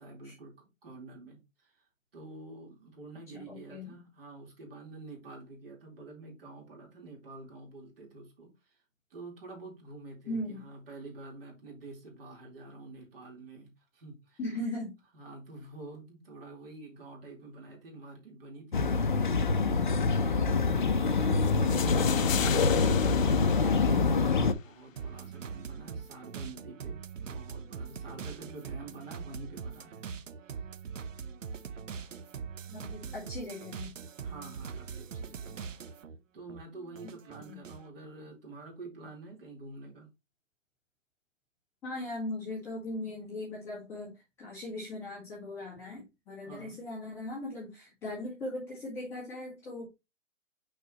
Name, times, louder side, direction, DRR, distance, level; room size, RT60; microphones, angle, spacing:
voice 1, 0.0-1.8 2.1-8.8 9.1-14.4 15.1-20.6 21.5-22.2 22.5-30.1 34.2-35.7 36.3-40.1 46.4-46.8, right 3 dB, 45° right, 4.0 m, -48 dB
voice 2, 3.3-4.0 10.3-10.7 14.4-14.9 22.0-22.4 32.7-33.9 37.0-37.1 37.4-37.6 41.8-49.9, left 1 dB, 5° left, 1.8 m, -39 dB
sound 1, 18.7-24.5, left 4 dB, 40° left, 0.6 m, -25 dB
sound 2, 21.4-24.5, left 9 dB, 80° left, 0.7 m, -37 dB
sound 3, 25.0-36.2 36.5-37.9, right 6 dB, 75° right, 0.9 m, -42 dB
6.6 x 6.2 x 3.0 m
hypercardioid pair, 170°, 39 cm